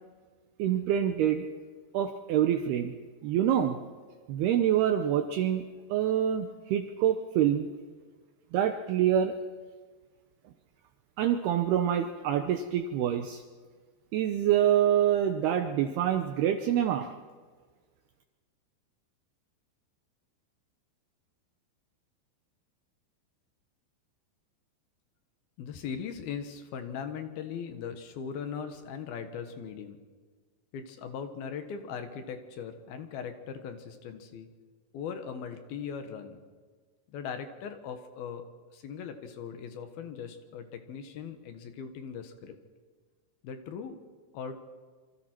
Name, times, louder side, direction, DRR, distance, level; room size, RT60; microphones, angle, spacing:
voice 1, 0.6-1.5 1.9-3.0 3.2-3.8 4.3-5.6 5.9-7.7 8.5-9.4 11.2-13.4 14.1-17.1, right 10 dB, 75° right, 7 dB, 2.5 m, -26 dB
voice 2, 25.6-30.0 30.7-34.5 34.9-36.4 37.1-38.5 38.7-42.6 43.4-44.0 44.3-44.6, left 7 dB, 65° left, 7 dB, 2.8 m, -39 dB
27.0 x 24.5 x 4.5 m, 1.5 s
omnidirectional pair, 5.3 m